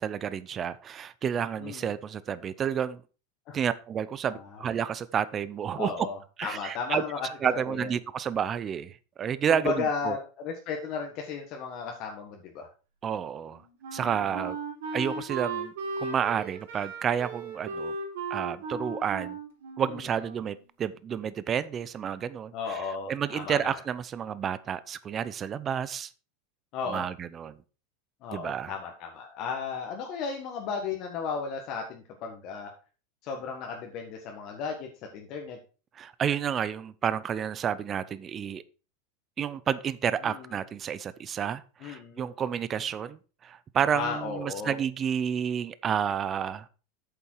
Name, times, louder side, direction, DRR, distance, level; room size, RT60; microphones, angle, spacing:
voice 1, 0.0-3.0 3.5-6.1 6.4-7.0 7.4-10.2 13.0-13.6 13.9-14.6 14.9-15.7 16.0-17.9 18.3-19.4 19.8-22.8 23.1-26.1 26.9-27.5 28.3-28.7 36.0-38.6 39.4-46.7, right 8 dB, 25° right, 0.5 m, -30 dB
voice 2, 1.6-1.9 3.5-3.6 4.3-4.6 5.7-7.9 9.5-12.7 14.2-14.5 22.5-23.6 26.7-27.1 28.2-32.7 33.2-35.6 40.3-40.6 41.8-42.3 43.9-44.8, left 5 dB, 40° left, 1.4 m, -35 dB
Wind instrument woodwind instrument, 13.4-20.6, right 3 dB, 85° right, 3.9 m, -36 dB
8.6 x 7.1 x 4.5 m
supercardioid pair, 155°, 0 cm